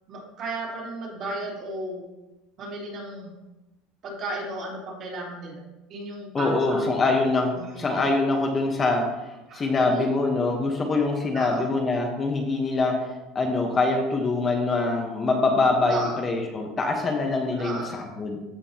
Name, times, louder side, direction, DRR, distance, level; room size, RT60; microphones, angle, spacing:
voice 1, 0.1-2.1 2.6-3.3 4.0-5.6 5.9-6.8 7.6-7.9 9.5-10.0 11.3-11.7 15.9-16.2 17.6-18.0, right 2 dB, 45° right, -4 dB, 3.1 m, -34 dB
voice 2, 6.3-13.0 13.3-18.4, left 3 dB, 25° left, 2 dB, 1.1 m, -24 dB
14.5 x 5.1 x 2.9 m, 1.0 s
supercardioid pair, 130°, 0 cm